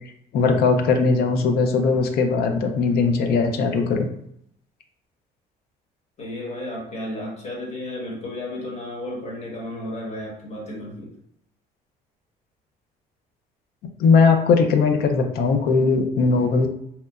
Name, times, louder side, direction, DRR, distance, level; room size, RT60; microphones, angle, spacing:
voice 1, 0.3-4.1 14.0-16.7, left 4 dB, 70° left, 5 dB, 0.5 m, -19 dB
voice 2, 6.2-11.1, left 1 dB, 40° left, -3 dB, 1.1 m, -33 dB
2.9 x 2.1 x 2.3 m, 0.72 s
cardioid pair, 110°, 17 cm